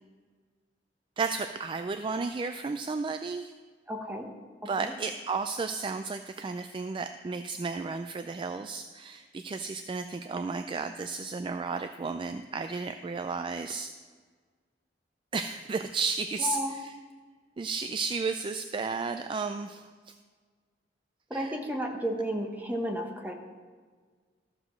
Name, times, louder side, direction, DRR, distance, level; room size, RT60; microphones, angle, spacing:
voice 1, 1.2-3.5 4.7-13.9 15.3-16.9 17.6-20.1 21.3-21.6, right 4 dB, 30° right, 8 dB, 0.3 m, -33 dB
voice 2, 3.9-4.3 4.8-4.9 16.4-16.8 21.3-23.3, equal, 10° right, 2 dB, 1.1 m, -32 dB
14.0 x 4.9 x 6.4 m, 1.5 s
head